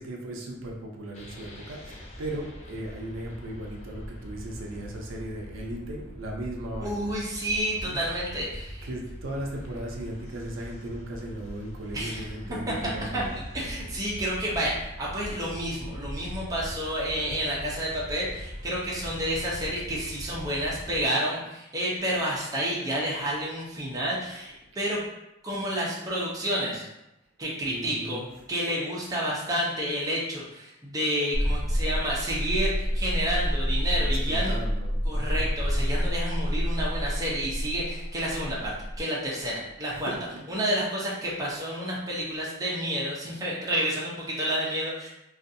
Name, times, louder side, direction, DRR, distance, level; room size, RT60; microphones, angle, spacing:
voice 1, 0.0-7.2 7.9-8.2 8.8-13.4 17.0-17.7 27.6-28.3 34.0-35.5 39.9-40.4, right 1 dB, 75° right, 0 dB, 0.5 m, -37 dB
sound 1, 1.1-21.1, equal, 35° left, 0.5 m, -41 dB
voice 2, 6.8-8.9 11.9-12.2 13.1-13.2 13.5-25.0 25.4-26.9 27.4-28.2 28.5-34.6 35.1-40.1 40.5-45.1, equal, 20° right, -5 dB, 0.6 m, -30 dB
sound 2, 31.3-39.0, equal, 15° left, 1.1 m, -28 dB
2.5 x 2.3 x 2.6 m, 0.89 s
head